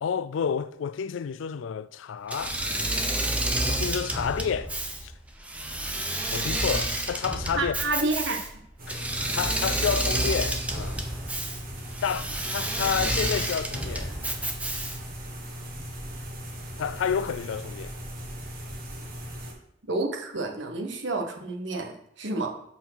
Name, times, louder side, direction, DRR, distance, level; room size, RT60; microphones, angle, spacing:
voice 1, 0.0-2.6 3.7-4.7 5.0-5.1 6.3-7.8 8.9-9.0 9.3-11.0 12.0-14.1 16.8-17.9, left 7 dB, 70° left, 0.3 m, -30 dB
Engine / Mechanisms, 2.3-15.2, right 1 dB, 5° right, 0.8 m, -30 dB
voice 2, 7.5-8.4 19.9-21.9 22.2-22.5, right 2 dB, 65° right, 1.2 m, -29 dB
sound 1, 8.8-19.5, equal, 50° right, 1.9 m, -39 dB
7.4 x 4.5 x 5.9 m
head